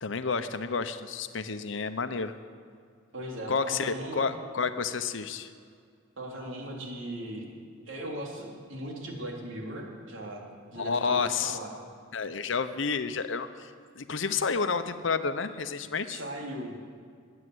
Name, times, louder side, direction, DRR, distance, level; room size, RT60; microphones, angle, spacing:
voice 1, 0.0-2.3 3.5-5.5 10.8-11.6 12.1-16.2, left 5 dB, 70° left, 10 dB, 0.8 m, -30 dB
voice 2, 3.1-4.3 6.2-7.5 7.9-10.4 10.7-11.7 16.1-16.8, right 1 dB, 75° right, -1 dB, 3.3 m, -38 dB
20.5 x 8.9 x 7.9 m, 2.2 s
head